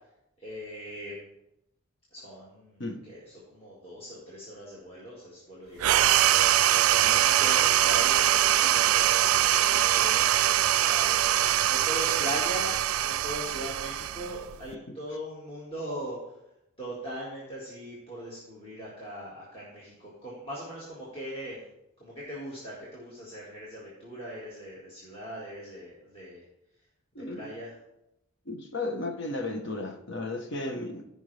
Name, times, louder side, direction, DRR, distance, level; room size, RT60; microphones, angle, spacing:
voice 1, 0.4-1.2 2.1-3.2 3.5-6.1 6.9-11.1 11.4-12.7 13.0-16.2 16.8-21.6 22.0-26.4 27.2-27.7, equal, 25° left, 1.9 m, -40 dB
sound 1, 5.8-14.7, right 12 dB, 75° right, 0.3 m, -23 dB
voice 2, 27.1-27.6 28.4-31.0, left 2 dB, 55° left, 1.1 m, -34 dB
15.0 x 5.3 x 3.4 m
head